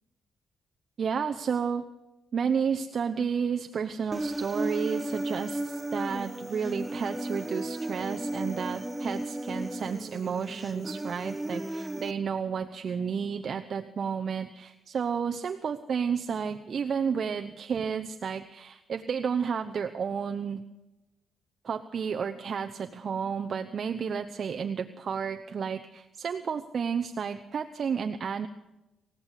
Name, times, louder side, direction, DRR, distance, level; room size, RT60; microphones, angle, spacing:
voice 1, 1.0-1.8 2.3-20.6 21.6-28.5, right 6 dB, 45° right, 6 dB, 0.9 m, -31 dB
Human voice, 4.1-12.1, right 1 dB, 5° right, 0.8 m, -34 dB
28.0 x 16.0 x 8.4 m, 1.0 s
cardioid pair, 140°, 0 cm